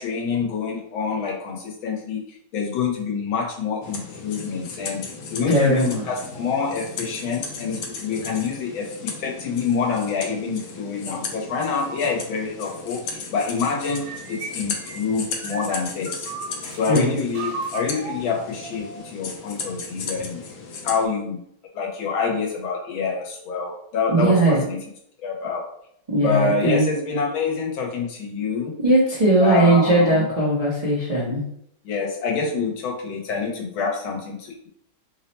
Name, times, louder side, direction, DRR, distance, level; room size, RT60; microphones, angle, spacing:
voice 1, 0.0-2.2 2.5-5.0 5.3-16.3 16.7-20.4 20.8-21.4 21.7-24.8 25.2-25.6 26.2-28.7 29.4-30.3 31.8-34.7, left 5 dB, 90° left, 0 dB, 1.6 m, -26 dB
sound 1, 3.8-21.1, left 4 dB, 70° left, 1.2 m, -36 dB
voice 2, 5.5-6.0 16.9-17.2 24.1-24.6 26.1-26.9 28.8-31.4, right 1 dB, 60° right, -8 dB, 0.4 m, -19 dB
sound 2, 14.0-16.9 17.3-19.1, right 4 dB, 80° right, 1.3 m, -35 dB
3.6 x 2.1 x 4.2 m, 0.72 s
omnidirectional pair, 2.1 m